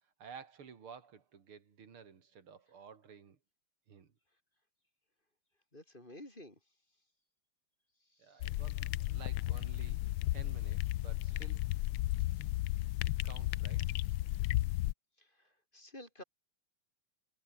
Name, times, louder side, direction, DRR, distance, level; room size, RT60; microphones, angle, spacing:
voice 1, 0.2-3.4 3.9-4.1 8.2-10.0 10.3-11.6 13.0-13.9, right 6 dB, 90° right, 3.3 m, -53 dB
voice 2, 5.7-6.6 8.2-8.4 12.1-12.5 15.2-16.2, left 1 dB, 20° left, 5.2 m, -53 dB
sound 1, 8.4-14.9, left 16 dB, 80° left, 1.5 m, -34 dB
omnidirectional pair, 2.3 m